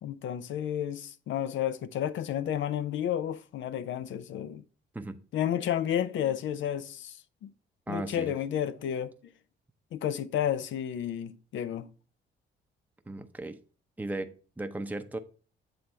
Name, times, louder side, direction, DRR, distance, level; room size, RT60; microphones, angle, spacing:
voice 1, 0.0-4.6 5.3-7.2 7.9-9.1 9.9-11.9, left 10 dB, 70° left, 0.6 m, -31 dB
voice 2, 7.9-8.3 13.1-13.6 14.0-15.2, right 2 dB, 10° right, 0.6 m, -36 dB
7.8 x 3.4 x 5.4 m
cardioid pair, 90°, 20 cm